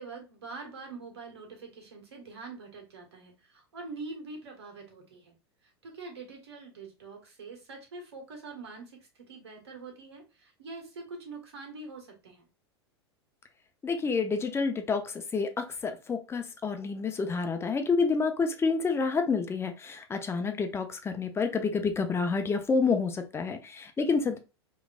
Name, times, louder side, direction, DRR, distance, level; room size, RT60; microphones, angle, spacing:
voice 1, 0.0-5.3 5.8-12.5 24.0-24.1, right 3 dB, 70° right, 1.7 m, -44 dB
voice 2, 13.8-24.4, left 4 dB, 15° left, 0.8 m, -29 dB
5.0 x 3.1 x 2.5 m
figure-of-eight pair, 90°, 14 cm